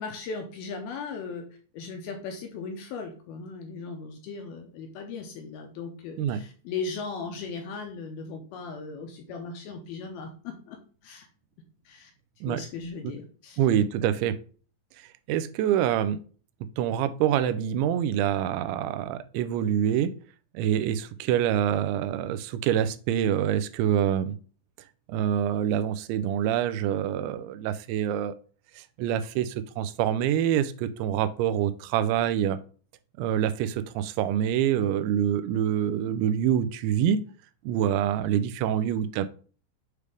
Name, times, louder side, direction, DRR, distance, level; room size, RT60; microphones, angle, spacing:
voice 1, 0.0-1.4 1.7-11.3 11.9-12.1 12.5-13.6, left 4 dB, 75° left, 3 dB, 2.4 m, -37 dB
voice 2, 13.6-14.4 15.3-16.2 16.8-20.1 20.5-24.3 25.1-28.3 28.8-32.6 33.2-37.2 37.7-39.3, right 10 dB, 90° right, 12 dB, 2.9 m, -26 dB
8.1 x 3.4 x 4.9 m, 0.41 s
omnidirectional pair, 5.1 m